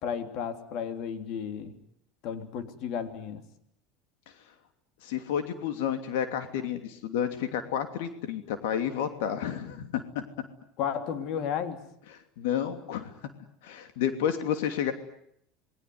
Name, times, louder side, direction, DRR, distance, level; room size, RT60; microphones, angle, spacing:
voice 1, 0.0-1.8 2.2-3.4 10.8-11.8, left 8 dB, 55° left, 8 dB, 3.3 m, -33 dB
voice 2, 5.0-10.2 12.4-13.1 13.6-14.9, left 9 dB, 85° left, 7 dB, 2.8 m, -30 dB
28.0 x 22.0 x 9.6 m, 0.73 s
supercardioid pair, 140°, 0 cm